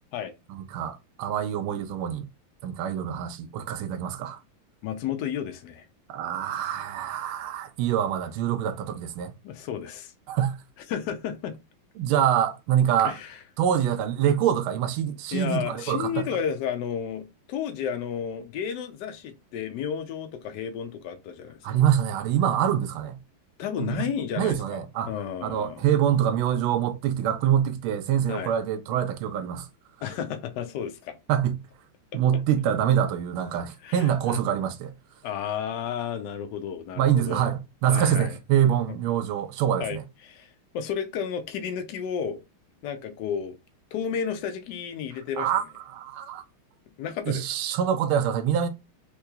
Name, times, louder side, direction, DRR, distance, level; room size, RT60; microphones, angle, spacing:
voice 1, 0.5-2.3 2.6-4.4 6.1-9.3 10.3-10.6 12.0-13.2 13.6-16.2 21.6-23.2 23.8-24.0 24.4-25.1 25.4-29.7 31.3-31.6 32.1-34.9 37.0-40.0 45.4-45.6 45.9-46.4 47.3-48.7, right 9 dB, 80° right, 1.4 m, -25 dB
voice 2, 4.8-5.8 9.4-10.1 10.9-11.5 13.0-13.4 15.3-21.6 23.6-24.8 25.1-25.8 28.3-28.5 30.0-31.2 32.1-32.2 33.8-34.4 35.2-37.5 37.9-38.4 38.9-39.0 39.8-42.4 42.8-43.6 43.9-45.5 47.0-47.4, left 8 dB, 70° left, 1.1 m, -32 dB
3.7 x 3.1 x 2.2 m
omnidirectional pair, 2.3 m